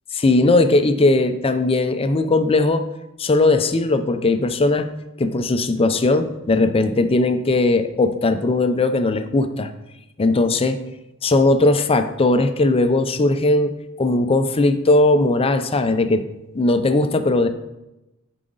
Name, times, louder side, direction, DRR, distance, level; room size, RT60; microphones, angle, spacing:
voice 1, 0.2-2.8 3.2-4.9 5.2-9.7 10.2-10.8 11.2-16.2 16.5-17.5, left 2 dB, 25° left, 9 dB, 0.5 m, -18 dB
9.9 x 4.9 x 3.9 m, 0.95 s
head